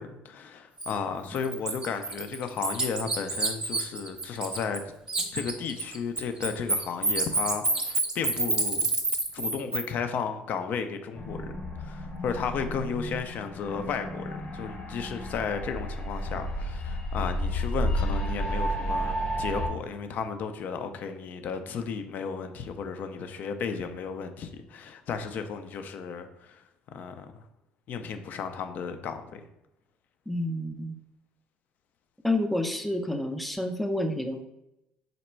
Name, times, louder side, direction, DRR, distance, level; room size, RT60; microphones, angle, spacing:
voice 1, 0.0-4.8 5.3-8.9 9.3-11.5 11.8-26.6 26.9-27.4 27.9-29.4, left 6 dB, 55° left, 8 dB, 0.5 m, -34 dB
Bird, 0.8-0.9 1.3-4.8 5.1-9.8, right 3 dB, 20° right, 0.8 m, -28 dB
sound 1, 11.1-19.7, equal, 35° left, 0.8 m, -32 dB
voice 2, 30.3-30.9 32.2-34.4, left 1 dB, ahead, 5 dB, 0.5 m, -29 dB
3.9 x 2.2 x 4.4 m, 0.87 s
supercardioid pair, 90°, 3 cm